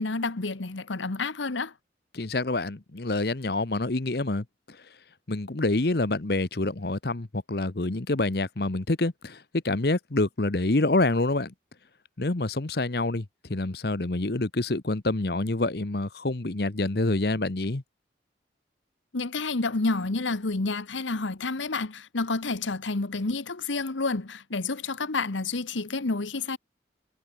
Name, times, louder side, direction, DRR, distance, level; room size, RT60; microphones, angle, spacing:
voice 1, 0.0-1.7 19.1-26.6, left 3 dB, 85° left, 1.2 m, -29 dB
voice 2, 2.1-4.8 5.3-11.5 12.2-13.2 13.5-17.8, left 2 dB, 55° left, 1.0 m, -27 dB
head